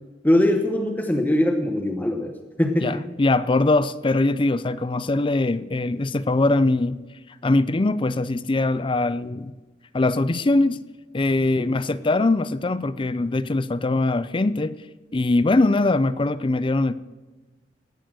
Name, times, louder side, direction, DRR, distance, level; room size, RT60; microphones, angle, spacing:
voice 1, 0.2-2.3 2.6-3.0 11.6-11.7, left 1 dB, 10° left, 3 dB, 1.0 m, -21 dB
voice 2, 2.8-7.0 7.4-9.5 9.9-10.8 11.1-14.7 15.1-16.9, left 2 dB, 30° left, 15 dB, 0.5 m, -22 dB
17.5 x 6.9 x 7.7 m, 1.3 s
head